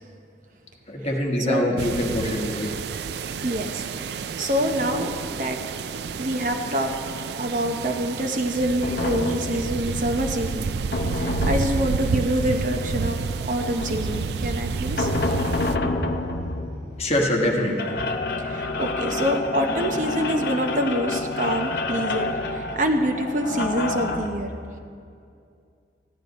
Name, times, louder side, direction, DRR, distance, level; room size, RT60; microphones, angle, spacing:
voice 1, 0.9-2.7 16.9-18.3, left 1 dB, 35° left, -1 dB, 1.3 m, -24 dB
sound 1, 1.8-15.8, right 5 dB, 65° right, 0.3 m, -30 dB
voice 2, 3.4-5.6 6.2-7.0 7.3-10.7 11.1-15.1 18.4-24.8, equal, 45° right, 4 dB, 0.8 m, -26 dB
sound 2, 8.8-24.3, left 2 dB, 60° left, 0.7 m, -29 dB
14.5 x 10.5 x 4.1 m, 2.4 s
head